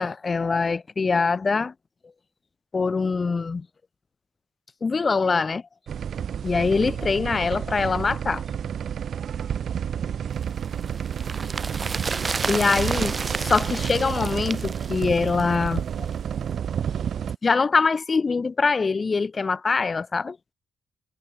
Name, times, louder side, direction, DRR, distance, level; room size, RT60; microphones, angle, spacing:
voice 1, 0.0-1.7 2.7-3.7 4.8-5.6 6.4-8.4 12.5-16.1 17.4-20.4, left 4 dB, 40° left, 1.2 m, -23 dB
sound 1, 5.9-17.4, right 8 dB, 70° right, 3.0 m, -30 dB
sound 2, 10.4-15.8 16.1-16.2, right 4 dB, 40° right, 5.2 m, -32 dB
cardioid pair, 65°, 0 cm